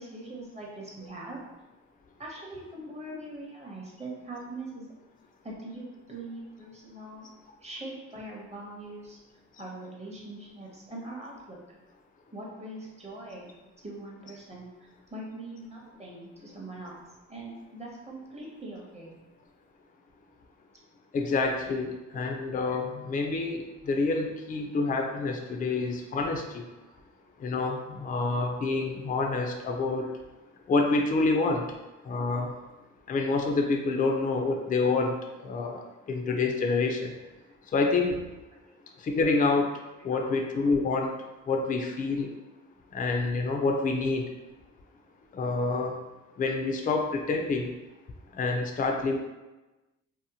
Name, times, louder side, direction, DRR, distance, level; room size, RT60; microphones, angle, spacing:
voice 1, 0.0-1.4 2.2-4.9 5.4-7.3 7.6-9.2 9.6-11.6 12.3-13.5 13.8-17.0 17.3-19.2 22.1-22.2 25.6-25.7 30.0-30.1 32.1-32.2 34.7-34.8 35.6-35.7 40.1-40.3, right 2 dB, 20° right, -3 dB, 0.8 m, -42 dB
voice 2, 21.1-26.6 27.4-30.1 30.7-31.7 32.0-32.5 33.1-35.8 36.1-37.1 37.7-38.2 39.0-39.7 40.0-41.1 41.5-42.3 42.9-44.3 45.3-46.0 46.4-47.7 48.3-49.2, left 3 dB, 30° left, 3 dB, 0.4 m, -27 dB
2.7 x 2.0 x 2.7 m, 1.1 s
cardioid pair, 90°, 30 cm